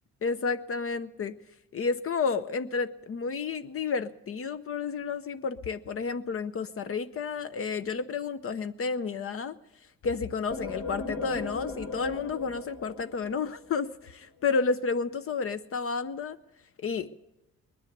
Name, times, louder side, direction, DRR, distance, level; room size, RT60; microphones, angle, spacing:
voice 1, 0.2-1.3 1.7-9.5 10.0-16.4 16.8-17.1, left 5 dB, 50° left, 10 dB, 0.7 m, -31 dB
sound 1, 10.5-14.1, left 2 dB, 70° left, 2.3 m, -38 dB
20.0 x 10.5 x 6.7 m, 0.95 s
cardioid pair, 90°, 30 cm